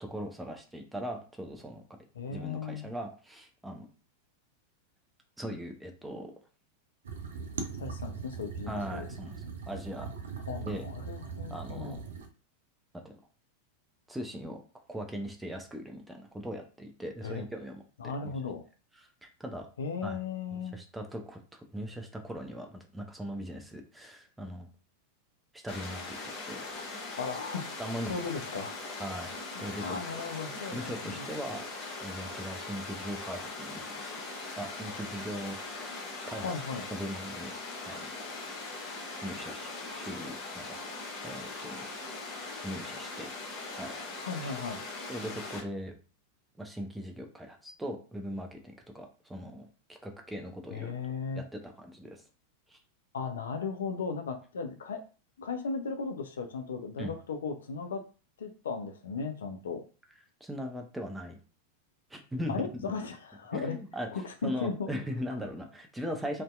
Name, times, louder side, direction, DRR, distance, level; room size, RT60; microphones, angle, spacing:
voice 1, 0.0-1.8 2.3-3.9 5.4-6.3 8.7-9.4 9.7-10.1 10.7-10.9 11.5-12.0 14.1-14.6 14.9-18.3 19.2-19.7 20.0-20.2 20.5-24.7 25.5-26.2 26.5-26.6 27.8-28.1 29.0-29.3 29.6-30.0 30.7-31.7 32.0-34.1 34.6-35.9 36.3-36.5 36.9-37.5 37.9-38.2 39.2-40.8 41.2-41.9 42.6-43.3 43.8-43.9 45.1-45.9 46.6-51.0 51.3-52.2 52.7-52.8 57.0-57.1 60.4-61.4 62.1-62.7 63.5-64.1 64.4-66.4, equal, 5° right, 3 dB, 0.5 m, -39 dB
voice 2, 2.2-2.9 7.8-9.1 10.5-12.0 17.2-17.4 18.0-18.6 19.8-20.8 27.2-27.8 28.0-28.8 29.5-31.3 36.4-36.8 44.2-44.8 50.7-51.4 53.1-55.0 55.4-58.0 58.4-59.8 62.5-63.8 64.1-64.9, left 5 dB, 65° left, 6 dB, 0.3 m, -36 dB
sound 1, 7.0-12.3, right 5 dB, 65° right, 0.4 m, -40 dB
Water, 25.7-45.6, left 3 dB, 35° left, 0.8 m, -40 dB
2.6 x 2.1 x 2.2 m, 0.36 s
figure-of-eight pair, 90°, 0 cm